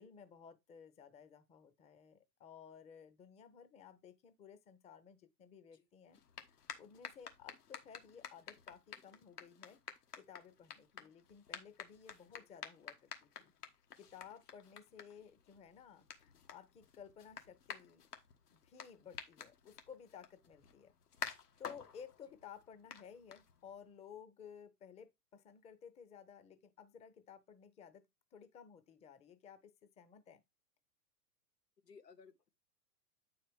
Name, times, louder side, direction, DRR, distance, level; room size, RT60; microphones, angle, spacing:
voice 1, 0.0-9.8 10.2-13.5 14.0-18.0 18.5-20.9 21.6-28.0 28.3-30.4, left 7 dB, 15° left, 0.6 m, -56 dB
sound 1, 6.1-23.9, left 7 dB, 70° left, 1.3 m, -52 dB
voice 2, 31.8-32.5, left 5 dB, 90° left, 0.9 m, -60 dB
8.8 x 4.8 x 3.4 m
figure-of-eight pair, 105°, 48 cm